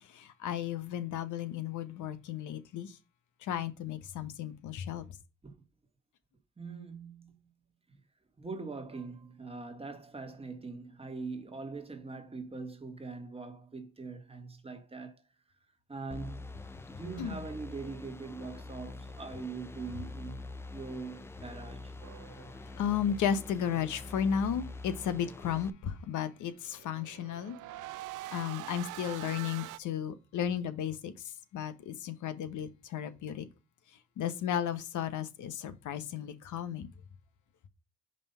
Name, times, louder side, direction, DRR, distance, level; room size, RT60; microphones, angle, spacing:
voice 1, 0.1-2.9 3.4-5.0 17.2-17.4 22.8-27.6 28.3-31.1 31.5-33.5 34.2-36.9, left 9 dB, 75° left, 0.9 m, -34 dB
voice 2, 6.6-7.4 8.4-15.1 15.9-16.5 16.9-20.4 20.7-21.9, right 4 dB, 20° right, 1.5 m, -42 dB
sound 1, 16.1-25.7, left 2 dB, 10° left, 0.4 m, -45 dB
sound 2, 22.0-22.9 26.7-29.8, right 15 dB, 90° right, 0.5 m, -44 dB
5.4 x 3.4 x 5.4 m
cardioid pair, 90°, 30 cm